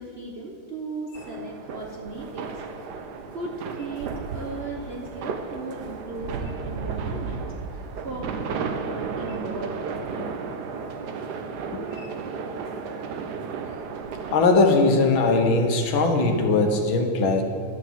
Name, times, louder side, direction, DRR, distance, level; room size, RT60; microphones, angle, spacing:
voice 1, 0.0-2.5 3.3-7.4 7.7-7.8 8.0-9.8, right 2 dB, 50° right, -1 dB, 0.8 m, -36 dB
sound 1, 1.1-14.4, right 5 dB, 65° right, 1.2 m, -33 dB
voice 2, 14.3-17.4, left 3 dB, 80° left, 4 dB, 1.9 m, -20 dB
10.5 x 6.5 x 7.2 m, 2.7 s
omnidirectional pair, 2.2 m